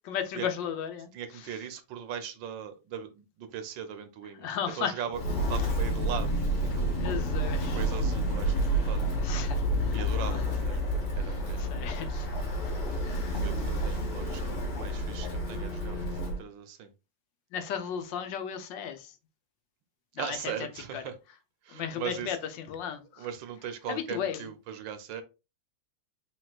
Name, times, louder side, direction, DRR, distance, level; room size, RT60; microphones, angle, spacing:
voice 1, 0.0-1.1 4.4-4.9 7.0-7.8 9.2-10.0 10.3-10.5 11.2-12.3 13.0-13.4 17.5-19.1 20.2-20.4 20.9-21.0 21.7-23.3 23.9-24.4, left 8 dB, 80° left, 1.4 m, -35 dB
voice 2, 1.1-7.1 7.6-9.0 9.9-10.8 11.1-12.0 13.3-14.4 14.7-16.9 20.1-21.2 21.6-22.4 23.2-25.2, right 8 dB, 80° right, 1.4 m, -39 dB
Walk footsteps, 5.1-16.4, equal, 55° left, 2.0 m, -29 dB
4.4 x 4.3 x 2.3 m
omnidirectional pair, 2.0 m